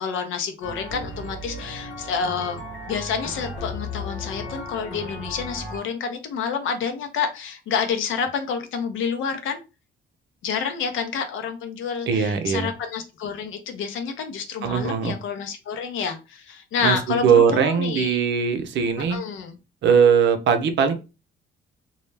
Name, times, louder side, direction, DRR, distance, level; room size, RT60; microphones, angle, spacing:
voice 1, 0.0-2.6 2.9-9.6 10.4-18.2 19.1-19.6, left 6 dB, 85° left, 7 dB, 0.6 m, -28 dB
sound 1, 0.6-5.8, left 2 dB, 65° left, 1.0 m, -35 dB
voice 2, 12.1-12.7 14.6-15.2 16.8-19.2 19.8-20.9, right 6 dB, 65° right, 7 dB, 0.6 m, -20 dB
2.3 x 2.1 x 3.2 m, 0.29 s
cardioid pair, 90°, 20 cm